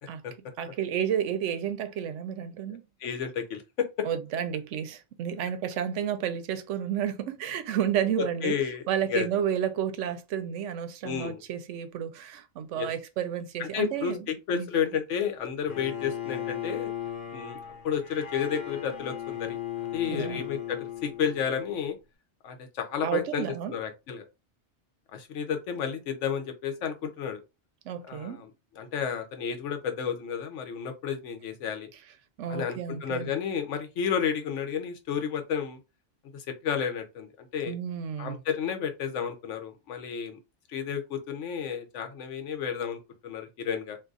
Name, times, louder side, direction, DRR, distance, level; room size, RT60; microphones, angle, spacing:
voice 1, 0.6-2.8 4.0-8.6 8.9-14.2 14.5-14.7 20.0-20.4 23.0-23.7 27.9-28.4 32.4-33.3 37.7-38.4, right 9 dB, 85° right, 0.9 m, -31 dB
voice 2, 2.7-4.1 8.2-9.3 11.0-11.4 12.7-12.9 13.6-16.9 17.3-19.6 19.9-22.0 22.4-24.2 25.1-27.4 28.1-28.5 28.8-31.9 32.5-35.8 36.3-37.7 38.2-40.4 40.7-44.0, left 7 dB, 90° left, 1.0 m, -32 dB
Bowed string instrument, 15.7-21.8, left 11 dB, 50° left, 0.8 m, -37 dB
2.6 x 2.4 x 3.8 m
omnidirectional pair, 1.2 m